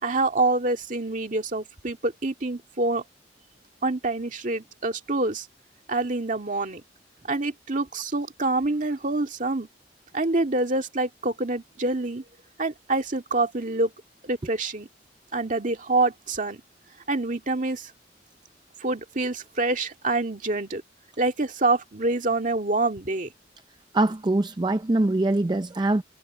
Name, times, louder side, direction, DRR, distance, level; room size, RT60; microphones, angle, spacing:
voice 1, 0.0-3.0 3.8-5.5 5.9-6.8 7.3-9.7 10.1-12.2 12.6-13.9 14.2-14.9 15.3-16.6 17.1-17.9 18.8-20.8 21.2-23.3, right 2 dB, 45° right, 2.1 m, -26 dB
voice 2, 23.9-26.0, right 2 dB, 25° right, 0.5 m, -23 dB
head